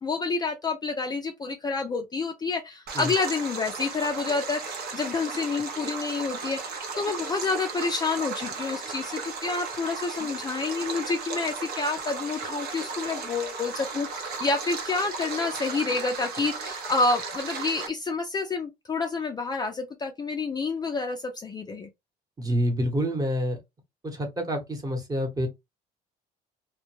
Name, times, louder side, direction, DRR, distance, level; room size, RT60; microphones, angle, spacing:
voice 1, 0.0-21.9, left 4 dB, 25° left, 0.4 m, -29 dB
Stream, 2.9-17.9, right 4 dB, 65° right, 0.7 m, -35 dB
voice 2, 22.4-23.6 24.0-25.5, equal, 20° right, 0.9 m, -27 dB
2.2 x 2.1 x 2.9 m
cardioid pair, 110°, 17 cm